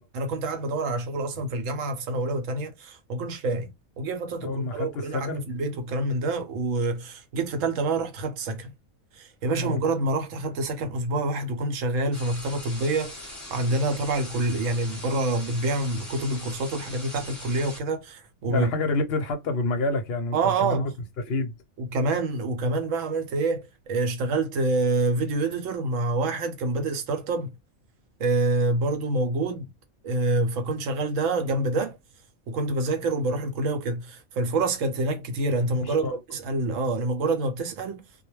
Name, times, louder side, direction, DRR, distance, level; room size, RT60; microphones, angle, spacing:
voice 1, 0.1-3.7 4.0-8.7 9.1-18.7 20.3-20.9 21.8-27.5 28.2-29.7 30.0-32.0 32.5-38.0, right 2 dB, 70° right, 0.9 m, -27 dB
voice 2, 4.4-5.4 9.5-9.8 18.5-20.9 21.2-21.5 35.8-36.2, left 2 dB, 55° left, 0.7 m, -28 dB
sound 1, 12.1-17.8, left 1 dB, 15° left, 1.0 m, -41 dB
2.3 x 2.1 x 3.0 m
omnidirectional pair, 1.5 m